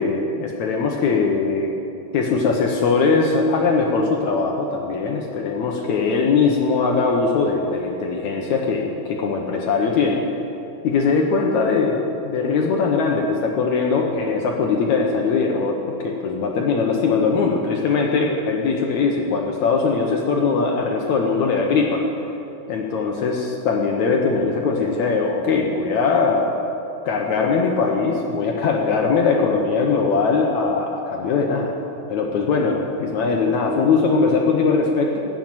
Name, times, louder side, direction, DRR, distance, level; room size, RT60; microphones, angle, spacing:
voice 1, 0.0-1.7 2.1-10.2 10.8-12.0 12.2-22.0 22.7-26.5 27.0-31.8 32.1-35.2, left 4 dB, 70° left, 1 dB, 1.8 m, -20 dB
14.5 x 7.5 x 9.3 m, 2.9 s
omnidirectional pair, 4.3 m